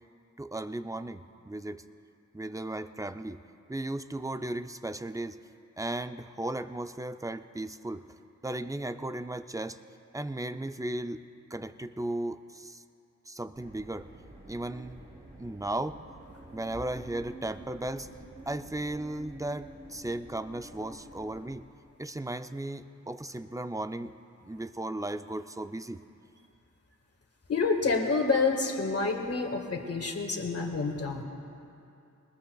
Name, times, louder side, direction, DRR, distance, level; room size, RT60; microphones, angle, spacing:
voice 1, 0.4-1.8 2.3-3.4 3.7-5.4 5.8-8.0 8.4-9.8 10.1-11.2 11.5-12.8 13.3-14.1 14.5-15.0 15.4-16.0 16.5-18.1 18.5-21.6 22.0-24.1 24.4-26.0, right 1 dB, 10° right, 10 dB, 0.4 m, -36 dB
sound 1, 13.5-21.6, right 1 dB, 30° right, 3.0 m, -49 dB
voice 2, 27.5-31.2, left 4 dB, 50° left, 3 dB, 1.7 m, -28 dB
22.0 x 20.0 x 2.3 m, 2.6 s
wide cardioid pair, 95°, 31 cm